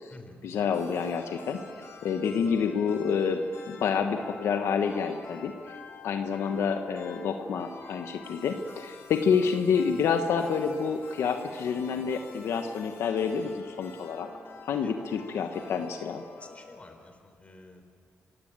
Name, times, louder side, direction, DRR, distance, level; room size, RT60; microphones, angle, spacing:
voice 1, 0.4-1.6 2.0-3.4 3.7-5.5 6.0-14.3 14.6-16.2, left 6 dB, 85° left, 6 dB, 1.3 m, -28 dB
sound 1, 0.5-17.1, left 4 dB, 65° left, 4.0 m, -48 dB
voice 2, 16.4-17.8, left 2 dB, 30° left, 6 dB, 4.2 m, -49 dB
25.5 x 16.5 x 9.1 m, 2.4 s
cardioid pair, 80°, 4 cm